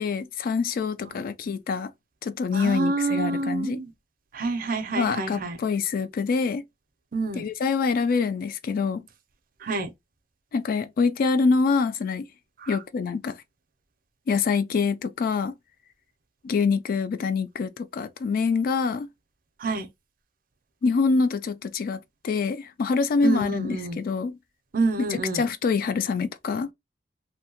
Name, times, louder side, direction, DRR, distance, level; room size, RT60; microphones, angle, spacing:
voice 1, 0.0-1.9 2.2-3.8 4.9-6.6 7.4-9.0 10.5-12.3 12.7-13.4 14.3-15.5 16.4-19.1 20.8-24.4 25.1-26.7, left 5 dB, 55° left, 0.3 m, -25 dB
voice 2, 2.5-3.9 4.3-5.6 7.1-7.5 9.6-9.9 12.6-12.8 19.6-19.9 23.2-24.0 24.7-25.4, right 3 dB, 55° right, 0.5 m, -27 dB
2.7 x 2.1 x 2.8 m
head